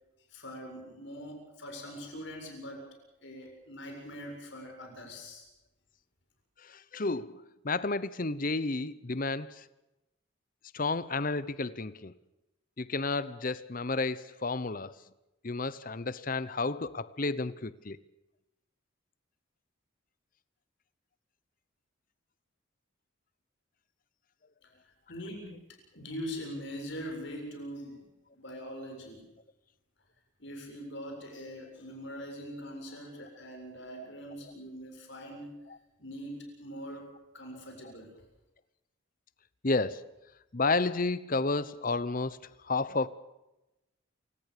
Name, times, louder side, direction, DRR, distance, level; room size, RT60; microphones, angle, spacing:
voice 1, 0.3-2.9 3.2-5.5 25.1-25.6 25.9-28.1 28.3-29.2 30.4-35.6 36.0-38.2, equal, 60° left, 7.4 m, -42 dB
voice 2, 6.7-9.6 10.7-12.1 12.8-14.9 15.4-18.0 34.0-34.1 39.6-40.1 40.5-42.4 42.7-43.1, left 3 dB, 40° left, 0.9 m, -31 dB
28.5 x 17.5 x 6.8 m
head